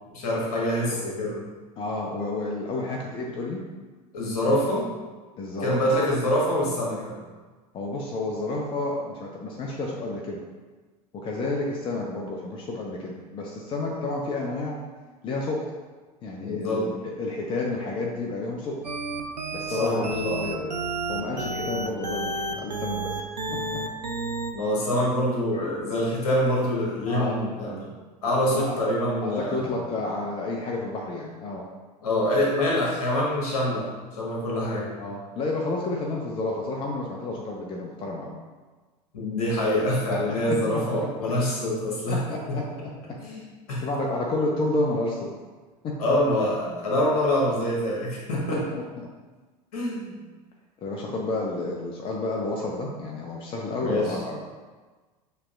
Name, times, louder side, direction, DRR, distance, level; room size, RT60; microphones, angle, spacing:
voice 1, 0.1-1.4 4.1-4.9 5.6-7.2 16.4-16.9 19.7-20.4 24.5-27.9 28.2-29.7 32.0-34.9 39.1-42.2 42.5-42.6 43.2-43.4 43.7-43.8 46.0-48.6 49.7-50.2 53.8-54.2, left 1 dB, 60° left, -4 dB, 1.4 m, -25 dB
voice 2, 1.8-3.6 5.4-6.1 7.7-10.4 11.1-14.8 15.2-15.6 16.2-16.9 17.2-18.8 19.5-20.7 21.1-23.8 27.1-27.4 28.5-28.8 29.2-31.7 35.0-38.3 40.3-40.4 40.7-41.3 42.1-42.9 43.8-45.3 45.8-45.9 48.5-48.8 50.8-54.4, left 2 dB, 25° left, -1 dB, 0.6 m, -30 dB
sound 1, 18.8-24.5, right 2 dB, 90° right, 0.4 m, -31 dB
6.5 x 2.9 x 2.5 m, 1.3 s
figure-of-eight pair, 80°, 21 cm